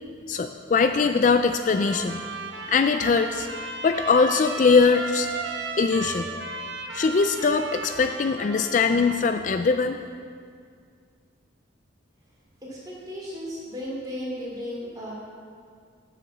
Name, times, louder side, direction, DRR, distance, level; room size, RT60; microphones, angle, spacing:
voice 1, 0.3-2.2 2.7-3.5 3.8-5.3 5.8-6.3 6.9-10.0, left 4 dB, 40° left, 8 dB, 0.3 m, -21 dB
Trumpet, 1.6-9.2, right 3 dB, 60° right, 1.0 m, -35 dB
voice 2, 12.6-15.1, equal, 20° right, -6 dB, 3.1 m, -35 dB
9.3 x 6.7 x 7.4 m, 2.2 s
head